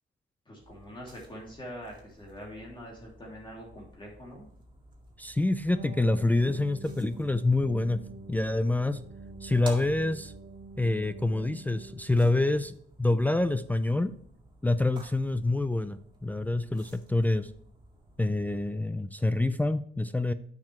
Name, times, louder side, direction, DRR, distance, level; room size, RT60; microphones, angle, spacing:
voice 1, 0.5-4.5, equal, 25° left, -3 dB, 2.7 m, -44 dB
sound 1, 0.6-18.7, right 1 dB, 25° right, 2.1 m, -53 dB
voice 2, 5.2-8.0 8.3-9.0 9.4-10.3 10.8-14.1 14.6-17.5 18.2-20.3, left 2 dB, 10° left, 11 dB, 0.4 m, -27 dB
sound 2, 5.7-12.8, right 3 dB, 45° right, 0.8 m, -46 dB
8.5 x 6.1 x 3.1 m, 0.63 s
cardioid pair, 90°, 20 cm